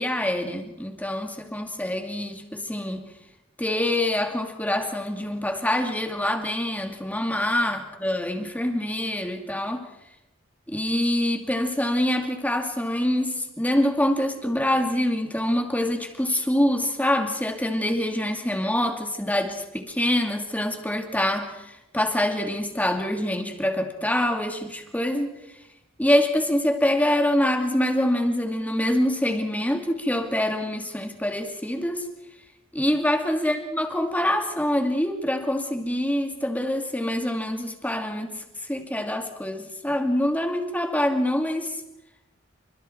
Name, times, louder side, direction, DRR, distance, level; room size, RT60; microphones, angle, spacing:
voice 1, 0.0-3.1 3.6-9.9 10.7-21.6 21.9-25.3 26.0-32.0 32.7-38.4 38.7-41.8, left 1 dB, 10° left, 4 dB, 2.4 m, -25 dB
27.0 x 25.5 x 4.5 m, 0.92 s
head